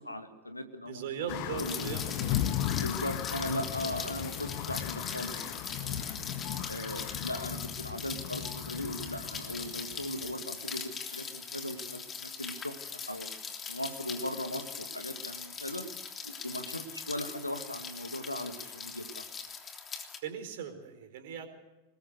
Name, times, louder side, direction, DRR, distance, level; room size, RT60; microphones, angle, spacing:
voice 1, 0.0-1.9 2.8-6.0 6.7-12.8 13.1-13.3 13.7-15.9 16.2-19.2, left 1 dB, 85° left, 7 dB, 2.2 m, -38 dB
voice 2, 0.9-2.8 20.2-21.5, right 8 dB, 55° right, 8 dB, 4.3 m, -40 dB
sound 1, 1.3-10.4, left 12 dB, 45° left, 1.3 m, -36 dB
Rain, 1.6-20.2, left 6 dB, 20° left, 3.3 m, -41 dB
24.5 x 21.0 x 6.4 m, 1.1 s
figure-of-eight pair, 90°, 0 cm